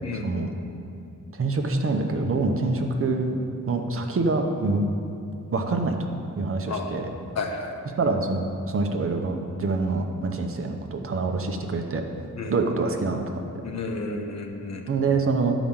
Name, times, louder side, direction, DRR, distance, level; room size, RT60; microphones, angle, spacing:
voice 1, 0.0-0.5 6.7-7.0 7.3-7.7 12.3-12.5 13.6-14.8, left 3 dB, 55° left, 3 dB, 1.0 m, -32 dB
voice 2, 1.3-3.4 3.7-4.9 5.5-6.1 6.4-7.1 8.0-12.0 12.5-13.4 14.9-15.5, right 3 dB, 45° right, 4 dB, 0.8 m, -25 dB
11.0 x 5.0 x 7.3 m, 2.6 s
wide cardioid pair, 180°, 31 cm